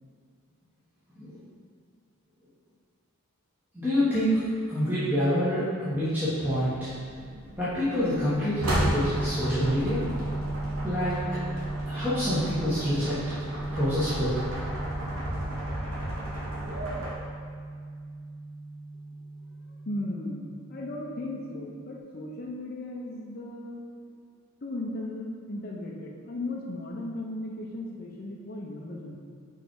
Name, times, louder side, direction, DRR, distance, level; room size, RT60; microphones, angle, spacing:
voice 1, 3.7-4.4 4.7-6.9 7.5-10.1 10.8-11.4 11.9-13.2 13.7-14.4, equal, 10° right, -13 dB, 1.3 m, -27 dB
sound 1, 6.7-17.1, equal, 65° right, 1.1 m, -34 dB
sound 2, 8.5-22.0, right 2 dB, 50° right, 0.3 m, -36 dB
voice 2, 19.7-23.8 24.6-29.2, left 1 dB, 40° left, -3 dB, 0.6 m, -36 dB
5.1 x 4.6 x 4.7 m, 2.1 s
head